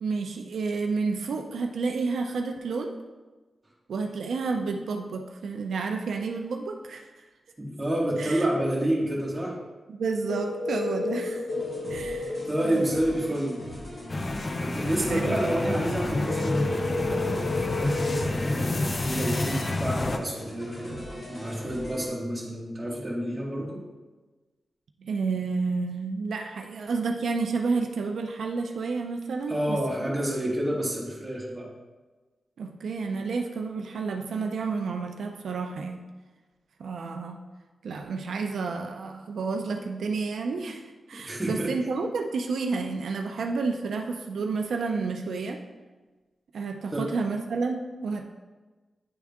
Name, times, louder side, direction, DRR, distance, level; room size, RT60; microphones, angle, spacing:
voice 1, 0.0-2.9 3.9-7.1 8.2-8.5 9.9-11.5 11.9-12.9 15.1-15.6 25.0-30.1 32.6-36.0 36.8-37.4 37.8-45.6 46.5-48.2, right 4 dB, 85° right, 3 dB, 0.5 m, -30 dB
voice 2, 7.6-9.6 12.5-13.6 14.6-21.0 21.3-23.8 29.5-31.7 41.3-41.7 46.9-47.0, right 1 dB, 10° right, -5 dB, 1.6 m, -29 dB
sound 1, 10.3-12.3 16.3-18.3, left 3 dB, 80° left, 1.1 m, -30 dB
sound 2, 11.5-22.1, equal, 50° left, 2.0 m, -41 dB
sound 3, 14.1-20.2, left 2 dB, 30° left, 0.4 m, -29 dB
9.6 x 3.6 x 3.5 m, 1.3 s
wide cardioid pair, 150°, 0 cm